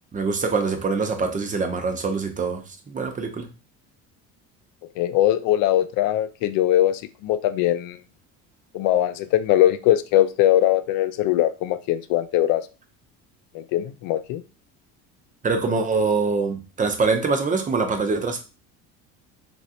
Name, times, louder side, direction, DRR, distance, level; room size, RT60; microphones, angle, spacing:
voice 1, 0.1-3.5 15.4-18.4, right 4 dB, 20° right, 0.6 m, -24 dB
voice 2, 5.0-8.0 8.7-12.7 13.5-14.4, left 13 dB, 70° left, 0.5 m, -21 dB
3.1 x 2.6 x 2.7 m
supercardioid pair, 105°, 35 cm